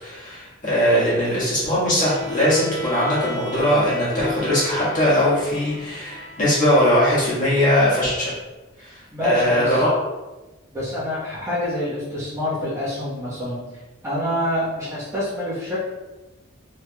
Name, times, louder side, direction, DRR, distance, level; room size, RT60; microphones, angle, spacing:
voice 1, 0.0-8.3 8.9-9.9, equal, 40° left, -9 dB, 1.5 m, -20 dB
Bowed string instrument, 1.9-7.2, left 2 dB, 20° left, 0.6 m, -35 dB
voice 2, 9.1-9.8 10.7-13.6 14.0-15.8, left 1 dB, 15° right, -11 dB, 1.1 m, -26 dB
3.4 x 3.2 x 2.3 m, 1.1 s
head